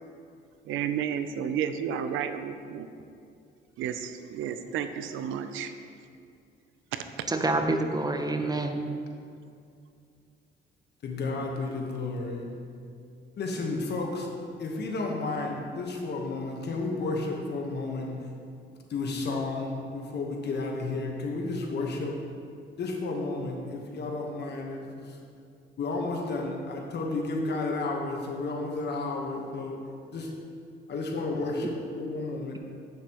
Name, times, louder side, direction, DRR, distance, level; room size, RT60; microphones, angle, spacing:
voice 1, 0.7-2.9 3.8-5.7 6.9-7.0, right 8 dB, 85° right, 0.5 m, -32 dB
voice 2, 7.3-8.8, right 2 dB, 20° right, 0.6 m, -27 dB
voice 3, 11.0-12.5 13.4-14.3 14.6-18.3 18.9-22.2 22.8-25.2 25.8-29.7 30.1-30.3 30.9-32.6, left 3 dB, 60° left, 1.2 m, -32 dB
8.1 x 6.9 x 3.0 m
cardioid pair, 90°, 20 cm